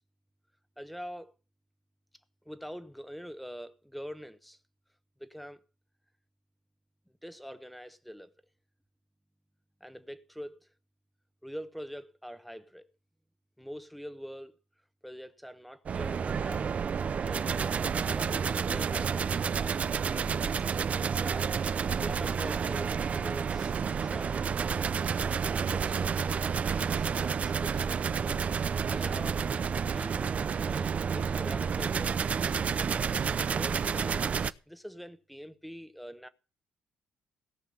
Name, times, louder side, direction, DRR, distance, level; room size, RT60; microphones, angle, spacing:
voice 1, 0.8-1.3 2.5-4.6 5.2-5.6 7.2-8.3 9.8-10.6 11.4-12.9 13.6-14.5 15.0-16.8 17.2-19.2 20.9-21.5 22.0-25.2 25.7-26.3 26.9-28.0 28.9-29.4 29.9-32.6 33.5-36.3, equal, ahead, 1.0 m, -44 dB
sound 1, 15.9-34.5, right 6 dB, 40° right, 0.6 m, -30 dB
17.5 x 5.9 x 6.9 m
cardioid pair, 100°, 4 cm